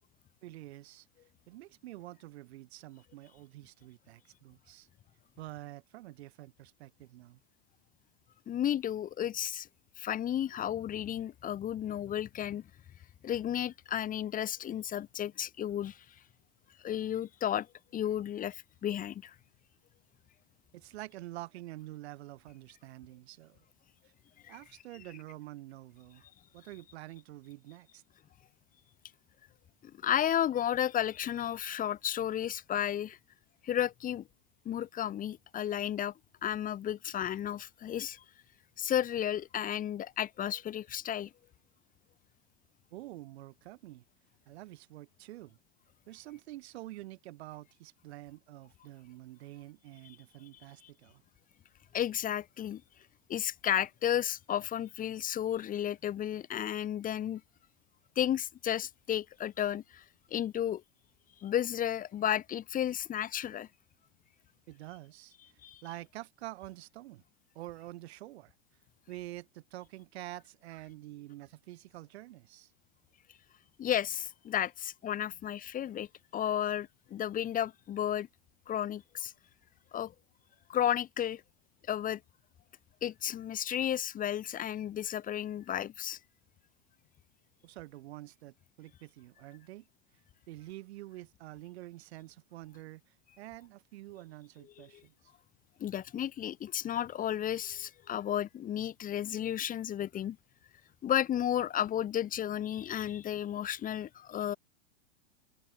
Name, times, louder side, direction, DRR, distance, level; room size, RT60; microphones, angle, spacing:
voice 1, 0.4-1.1 1.5-4.9 5.4-7.4 20.7-23.6 24.5-26.3 26.5-28.0 42.9-44.0 44.5-45.6 46.1-51.2 64.7-67.2 67.6-68.5 69.1-72.7 87.6-89.9 90.5-95.3, right 16 dB, 60° right, 5.3 m, -47 dB
voice 2, 8.5-9.7 10.0-12.6 13.2-16.0 16.8-17.7 17.9-19.3 24.4-24.6 29.8-33.2 33.6-34.2 34.6-36.1 36.4-38.2 38.8-41.3 51.9-52.8 53.3-57.4 58.2-60.0 60.3-60.8 61.4-63.7 65.6-65.8 73.8-78.3 78.7-79.3 79.9-80.1 80.7-81.4 81.9-82.2 83.0-86.2 94.8-95.0 95.8-100.4 101.0-104.6, left 10 dB, 20° left, 2.7 m, -33 dB
hypercardioid pair, 140°, 36 cm